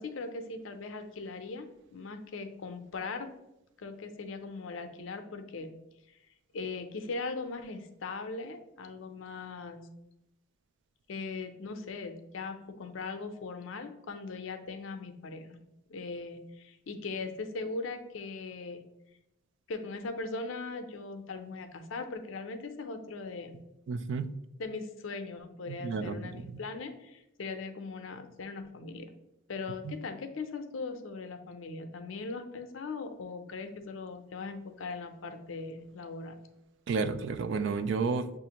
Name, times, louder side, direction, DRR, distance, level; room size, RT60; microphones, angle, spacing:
voice 1, 0.0-1.7 1.9-3.3 3.8-5.7 6.5-9.9 11.1-15.6 15.9-18.8 19.7-23.6 24.6-29.1 29.5-36.4, left 3 dB, 70° left, 7 dB, 0.5 m, -39 dB
voice 2, 23.9-24.3 25.7-26.6 29.8-30.0 36.9-38.3, right 4 dB, 60° right, 11 dB, 0.3 m, -32 dB
6.8 x 2.5 x 2.9 m, 0.88 s
head